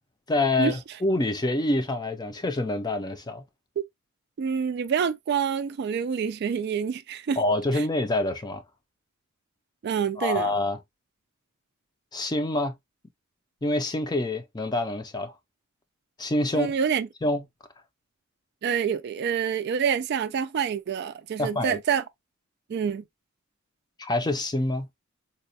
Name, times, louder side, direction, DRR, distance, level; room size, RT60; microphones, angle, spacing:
voice 1, 0.3-3.4 7.4-8.6 10.2-10.8 12.1-12.8 13.6-15.3 16.2-16.7 17.2-17.4 21.4-21.8 24.0-24.9, left 2 dB, 20° left, 0.5 m, -26 dB
voice 2, 4.4-7.4 9.8-10.5 16.5-17.1 18.6-22.0 22.7-23.0, right 7 dB, 55° right, 0.3 m, -27 dB
4.1 x 2.2 x 2.6 m
head